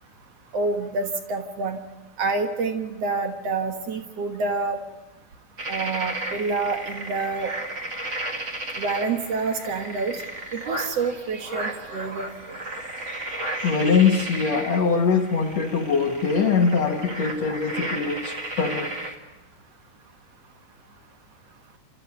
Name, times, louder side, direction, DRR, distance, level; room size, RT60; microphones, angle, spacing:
voice 1, 0.5-1.8 2.2-4.8 5.7-7.5 8.8-10.2 10.5-12.6, right 4 dB, 75° right, 1.4 m, -27 dB
sound 1, 5.6-19.1, right 2 dB, 35° right, 1.1 m, -34 dB
voice 2, 13.6-18.9, left 5 dB, 70° left, 1.6 m, -22 dB
29.5 x 14.5 x 9.4 m
omnidirectional pair, 5.2 m